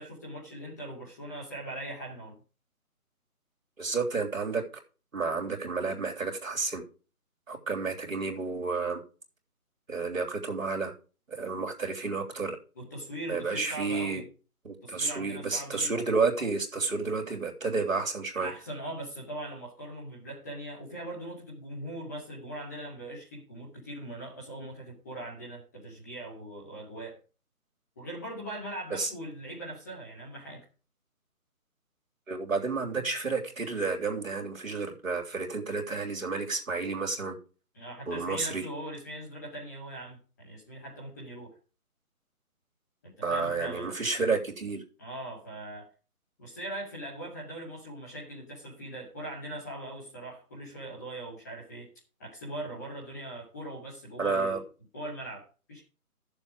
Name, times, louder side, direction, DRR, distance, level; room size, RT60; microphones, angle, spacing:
voice 1, 0.0-2.3 12.8-14.3 14.8-15.9 18.4-27.2 28.0-30.6 37.7-41.5 43.0-43.9 45.0-45.9 46.4-51.9 52.2-54.6 54.9-55.8, right 1 dB, 10° left, -4 dB, 2.2 m, -41 dB
voice 2, 3.8-4.6 5.1-6.8 7.5-9.0 9.9-10.9 11.3-12.6 13.3-14.2 14.6-18.5 28.9-29.1 32.3-37.4 38.1-38.6 43.2-44.8 54.2-54.6, right 4 dB, 60° right, 2 dB, 3.3 m, -31 dB
12.5 x 7.1 x 5.0 m, 0.35 s
hypercardioid pair, 175°, 46 cm